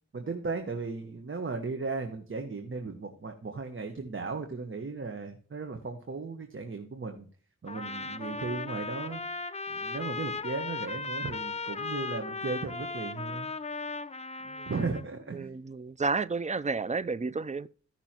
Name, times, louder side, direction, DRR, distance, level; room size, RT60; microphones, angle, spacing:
voice 1, 0.1-7.3 7.6-9.2 9.7-13.5 14.7-15.5, right 4 dB, 45° right, 1.4 m, -36 dB
Trumpet, 7.7-15.0, left 4 dB, 20° left, 0.6 m, -37 dB
voice 2, 15.3-17.7, right 4 dB, 25° right, 0.5 m, -31 dB
15.5 x 6.0 x 3.0 m
cardioid pair, 65°, 29 cm